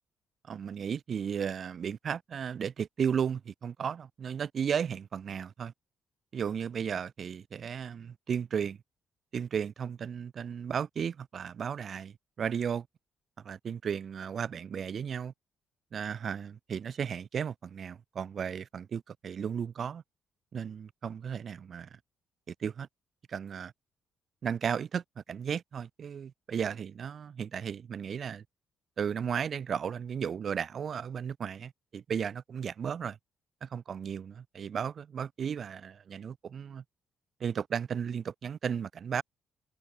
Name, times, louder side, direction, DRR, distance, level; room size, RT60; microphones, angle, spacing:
voice 1, 0.5-5.7 6.3-8.8 9.3-12.9 13.4-15.3 15.9-20.0 20.5-21.9 22.5-22.9 23.3-23.7 24.4-28.4 29.0-33.2 33.6-36.8 37.4-39.2, right 7 dB, 50° right, 4.9 m, -34 dB
cardioid pair, 90°, 0 cm